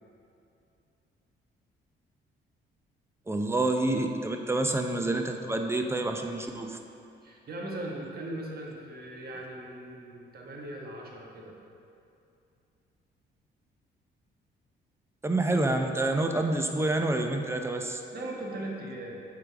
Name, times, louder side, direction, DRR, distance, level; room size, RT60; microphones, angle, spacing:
voice 1, 3.3-6.8 15.2-18.0, right 2 dB, 15° right, 4 dB, 0.5 m, -28 dB
voice 2, 7.2-11.5 18.1-19.2, right 1 dB, 50° right, -1 dB, 1.2 m, -39 dB
7.8 x 3.8 x 4.8 m, 2.6 s
cardioid pair, 90°, 20 cm